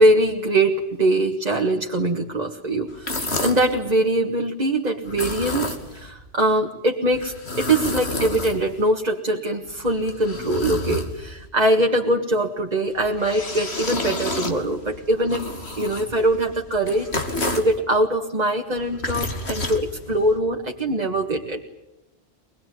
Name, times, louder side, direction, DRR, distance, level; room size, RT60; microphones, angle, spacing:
voice 1, 0.0-15.5 15.8-21.6, right 1 dB, 40° right, 1 dB, 1.9 m, -22 dB
sound 1, 2.9-3.7 5.0-6.1 7.1-8.9 9.6-11.5 12.9-17.8 18.7-20.4, left 2 dB, 85° left, 3.0 m, -30 dB
24.0 x 21.0 x 9.5 m, 0.97 s
omnidirectional pair, 1.1 m